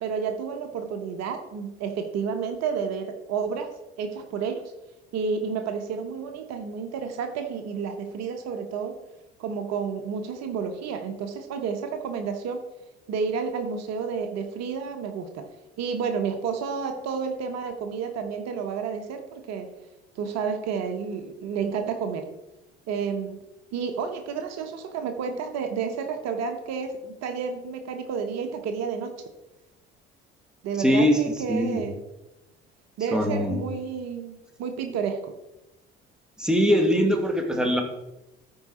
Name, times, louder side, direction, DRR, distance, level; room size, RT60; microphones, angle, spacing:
voice 1, 0.0-3.7 4.0-4.6 5.1-8.9 9.4-12.6 13.1-15.4 15.8-19.7 20.1-22.2 22.9-23.4 23.7-29.1 30.6-32.0 33.0-35.2, right 6 dB, 60° right, 6 dB, 1.2 m, -30 dB
voice 2, 30.8-31.2 31.5-31.8 33.1-33.6 36.4-37.8, equal, ahead, 3 dB, 2.1 m, -22 dB
14.0 x 4.9 x 4.3 m, 0.97 s
hypercardioid pair, 55°, 30 cm